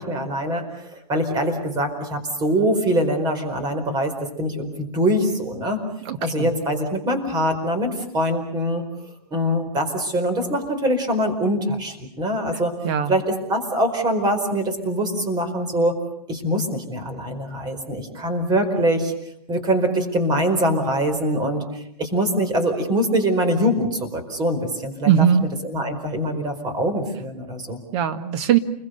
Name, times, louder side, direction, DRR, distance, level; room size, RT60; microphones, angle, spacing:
voice 1, 0.0-5.8 6.2-8.8 9.3-12.7 13.1-16.0 16.3-19.1 19.5-25.1 25.6-27.8, equal, 20° right, 6 dB, 4.6 m, -23 dB
voice 2, 6.1-6.5 12.8-13.2 25.0-25.5 27.9-28.6, right 8 dB, 45° right, 9 dB, 1.9 m, -20 dB
29.5 x 22.0 x 6.7 m, 0.75 s
hypercardioid pair, 140°, 20 cm